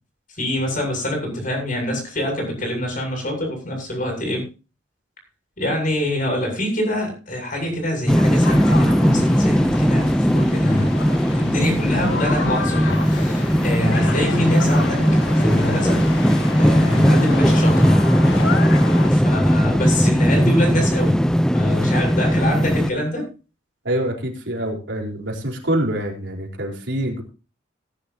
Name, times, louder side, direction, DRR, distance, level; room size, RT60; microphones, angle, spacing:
voice 1, 0.4-4.4 5.6-11.0 11.4-15.0 15.3-16.0 16.6-18.0 19.1-21.1 21.5-23.3, left 1 dB, 45° left, 2 dB, 7.7 m, -25 dB
sound 1, 8.1-22.9, equal, 5° left, 0.6 m, -18 dB
sound 2, 8.4-19.1, left 3 dB, 75° left, 2.1 m, -31 dB
voice 2, 23.8-27.2, right 1 dB, 75° right, 0 dB, 4.3 m, -25 dB
19.5 x 10.5 x 2.8 m, 0.33 s
head